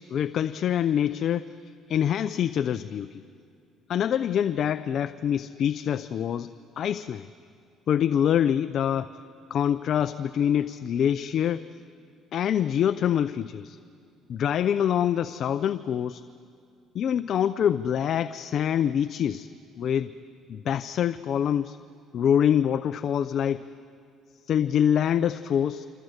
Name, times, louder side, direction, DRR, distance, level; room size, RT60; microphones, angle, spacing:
voice 1, 0.0-1.5 1.9-3.2 3.9-7.3 7.9-9.1 9.5-11.6 12.3-13.8 14.3-16.2 16.9-19.5 19.8-20.1 20.5-21.8 22.1-23.7 24.5-25.9, left 9 dB, 55° left, 12 dB, 0.6 m, -25 dB
26.0 x 26.0 x 8.0 m, 2.5 s
cardioid pair, 110°, 0 cm